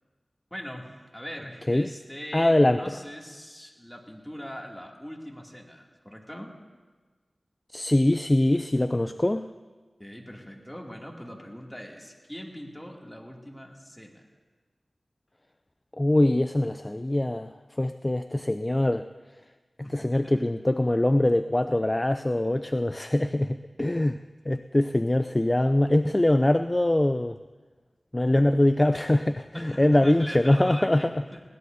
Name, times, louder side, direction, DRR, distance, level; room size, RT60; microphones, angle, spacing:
voice 1, 0.5-6.5 10.0-14.2 19.8-20.5 29.5-31.4, equal, 5° left, -1 dB, 2.5 m, -41 dB
voice 2, 2.3-2.8 7.7-9.5 16.0-17.5 17.8-19.1 19.9-24.2 24.5-27.4 28.1-31.1, left 1 dB, 30° left, 10 dB, 0.4 m, -23 dB
21.0 x 17.5 x 2.7 m, 1.4 s
cardioid pair, 40°, 0 cm